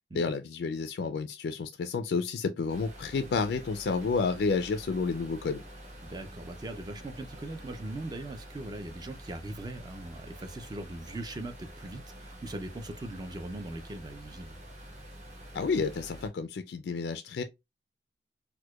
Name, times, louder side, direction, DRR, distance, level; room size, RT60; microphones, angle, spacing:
voice 1, 0.1-5.6 15.5-17.4, left 4 dB, 65° left, 0.3 m, -30 dB
sound 1, 2.7-16.3, equal, 40° right, 1.0 m, -47 dB
voice 2, 6.0-14.6, right 1 dB, 25° right, 0.3 m, -40 dB
4.5 x 2.2 x 2.2 m
head